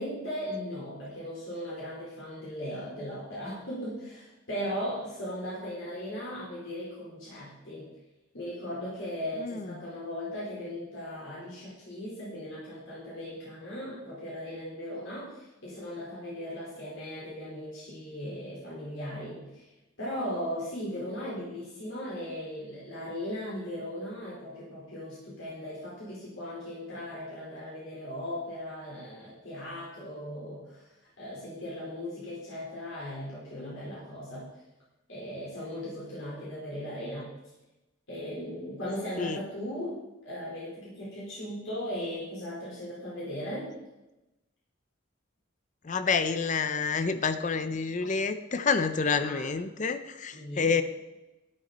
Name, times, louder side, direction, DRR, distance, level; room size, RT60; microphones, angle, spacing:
voice 1, 0.0-7.9 8.3-19.7 20.0-34.5 35.1-37.3 38.1-43.7 49.2-49.5 50.3-50.7, equal, 70° left, -7 dB, 4.3 m, -38 dB
voice 2, 9.4-9.8 39.2-39.4 45.8-50.8, left 5 dB, 35° left, 10 dB, 0.6 m, -28 dB
12.5 x 10.5 x 4.2 m, 0.99 s
head